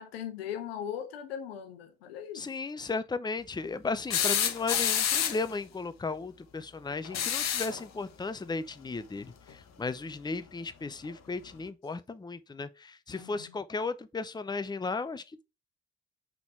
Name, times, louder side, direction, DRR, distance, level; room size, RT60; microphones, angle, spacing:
voice 1, 0.0-2.4 13.1-13.5, left 9 dB, 90° left, 0.9 m, -39 dB
voice 2, 2.3-15.2, left 3 dB, 15° left, 0.6 m, -35 dB
sound 1, 4.1-5.5 7.0-7.8 9.5-9.6 11.0-11.1, left 9 dB, 60° left, 1.1 m, -28 dB
5.9 x 3.7 x 4.6 m
hypercardioid pair, 45°, 30 cm